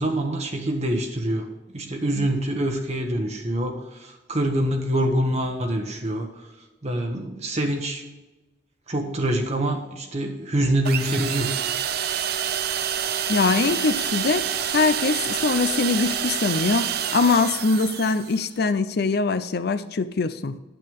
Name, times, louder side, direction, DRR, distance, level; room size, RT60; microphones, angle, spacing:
voice 1, 0.0-6.3 6.8-8.0 8.9-11.5, right 1 dB, 40° right, 1.1 m, -25 dB
sound 1, 10.9-18.5, right 9 dB, 60° right, 0.6 m, -27 dB
voice 2, 13.3-20.6, left 4 dB, 60° left, 0.5 m, -23 dB
9.2 x 8.3 x 3.6 m
head